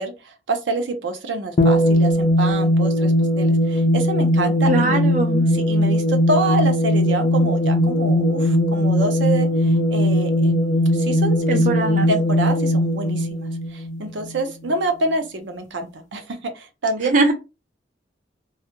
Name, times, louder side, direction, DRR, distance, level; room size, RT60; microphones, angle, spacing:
voice 1, 0.0-5.0 5.5-11.7 12.1-17.3, right 2 dB, 85° right, 0.6 m, -27 dB
sound 1, 1.6-14.4, equal, 40° left, 0.4 m, -19 dB
voice 2, 4.7-5.5 11.5-12.1 17.1-17.3, right 3 dB, 45° right, 0.4 m, -21 dB
2.3 x 2.1 x 2.9 m
head